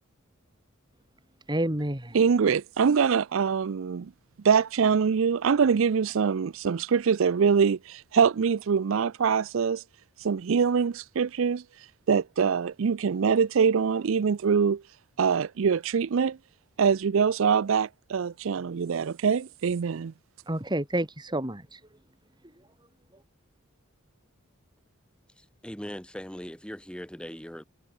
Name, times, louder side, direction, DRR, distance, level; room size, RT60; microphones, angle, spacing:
voice 1, 1.5-2.2 20.5-21.8, right 1 dB, 20° right, 2.6 m, -29 dB
voice 2, 2.1-4.1 4.4-9.8 10.2-11.6 12.1-14.8 15.2-16.4 16.8-20.1, right 6 dB, 70° right, 0.4 m, -24 dB
voice 3, 25.6-27.6, equal, 5° left, 5.7 m, -39 dB
head